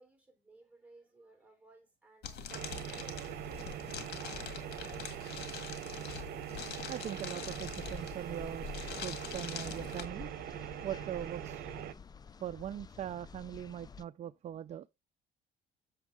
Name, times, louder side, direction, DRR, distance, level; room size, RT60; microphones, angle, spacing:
voice 1, 0.0-2.5 2.9-5.4 12.3-12.4, right 3 dB, 10° right, 3.7 m, -61 dB
sound 1, 2.2-10.0, left 7 dB, 75° left, 1.8 m, -44 dB
sound 2, 2.5-11.9, right 12 dB, 65° right, 0.8 m, -43 dB
voice 2, 6.9-8.7 9.0-10.3 10.8-11.7 12.4-14.9, right 11 dB, 40° right, 0.4 m, -41 dB
sound 3, 7.5-14.0, left 5 dB, 25° left, 0.4 m, -49 dB
7.3 x 6.9 x 3.6 m
cardioid pair, 110°, 17 cm